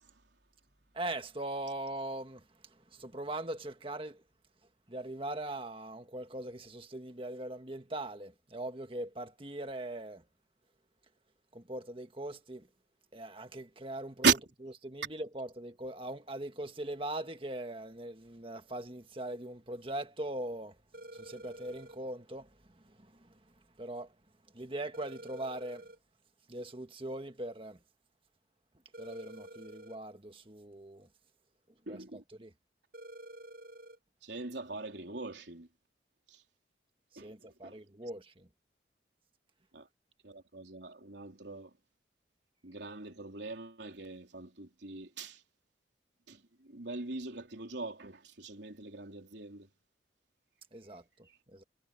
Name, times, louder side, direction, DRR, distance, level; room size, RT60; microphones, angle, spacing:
voice 1, 0.9-4.2 4.9-10.2 11.5-12.7 13.1-14.4 14.8-20.8 21.1-24.2 24.5-25.9 26.5-27.8 29.0-31.1 31.9-32.5 37.1-38.5 50.7-51.6, right 1 dB, 30° right, 1.6 m, -41 dB
sound 1, 20.9-22.0 24.9-26.0 28.9-30.0 32.9-34.0, right 1 dB, 55° right, 6.1 m, -49 dB
voice 2, 31.9-32.2 34.2-35.7 37.2-37.3 37.6-37.8 39.7-39.9 40.2-41.7 42.6-45.4 46.3-49.7, right 4 dB, 75° right, 3.6 m, -37 dB
head